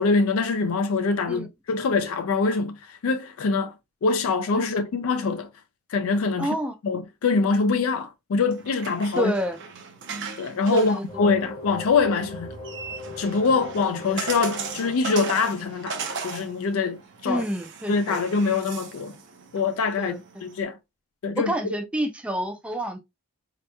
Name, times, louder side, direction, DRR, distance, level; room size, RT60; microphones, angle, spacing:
voice 1, 0.0-3.7 4.0-5.5 5.9-6.5 6.8-9.3 10.4-12.5 13.2-17.4 17.9-19.2 19.5-20.8 21.2-21.7, left 4 dB, 70° left, 0.4 m, -24 dB
voice 2, 6.4-6.7 9.2-9.6 10.7-11.4 17.3-18.2 20.0-20.2 21.4-23.0, right 1 dB, 5° right, 0.4 m, -29 dB
sound 1, 8.4-20.6, right 5 dB, 50° right, 0.6 m, -38 dB
sound 2, 11.1-16.8, left 2 dB, 25° left, 0.8 m, -41 dB
4.2 x 2.9 x 2.2 m
head